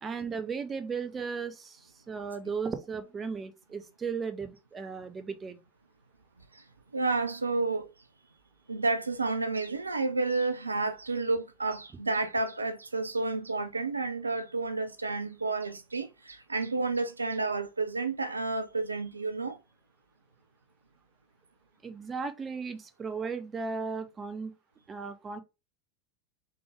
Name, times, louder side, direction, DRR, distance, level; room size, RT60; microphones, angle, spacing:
voice 1, 0.0-5.6 21.8-24.5 24.9-25.4, right 5 dB, 25° right, 0.8 m, -36 dB
voice 2, 6.9-7.9 8.7-19.6, right 3 dB, 85° right, 0.4 m, -30 dB
3.5 x 3.4 x 3.4 m
figure-of-eight pair, 80°, 0 cm